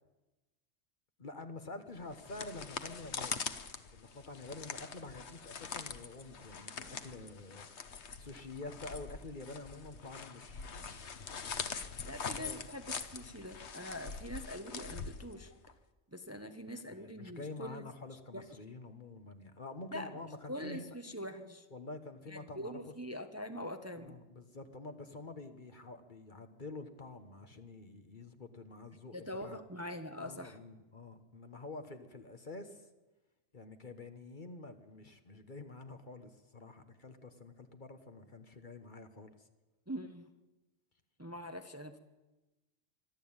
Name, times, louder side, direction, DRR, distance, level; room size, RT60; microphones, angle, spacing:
voice 1, 1.2-3.4 3.9-12.6 16.7-20.9 21.7-22.9 24.0-29.6 30.2-32.9 33.5-39.5, left 2 dB, 40° left, 8 dB, 1.4 m, -48 dB
sound 1, 2.0-15.7, left 5 dB, 65° left, 1.4 m, -43 dB
voice 2, 12.0-15.5 16.1-17.8 18.1-18.5 19.9-20.1 20.5-21.7 22.3-24.2 29.1-30.6 39.9-40.3 41.2-42.0, equal, 15° right, 7 dB, 1.0 m, -43 dB
25.5 x 12.0 x 8.8 m, 1.1 s
omnidirectional pair, 1.3 m